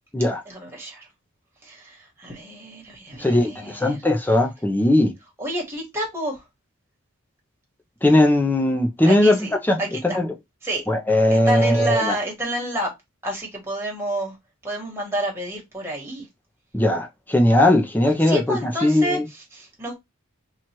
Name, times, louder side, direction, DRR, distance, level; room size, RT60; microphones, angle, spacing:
voice 1, 0.5-1.1 1.6-4.0 5.4-6.4 9.0-9.5 9.8-10.2 10.6-10.8 11.3-12.9 13.2-14.3 14.6-16.3 18.2-20.0, right 1 dB, 10° right, 1.4 m, -29 dB
voice 2, 3.2-5.1 8.0-9.4 9.6-10.3 10.9-12.2 16.7-19.3, left 1 dB, 10° left, 0.5 m, -19 dB
3.0 x 2.4 x 4.3 m
head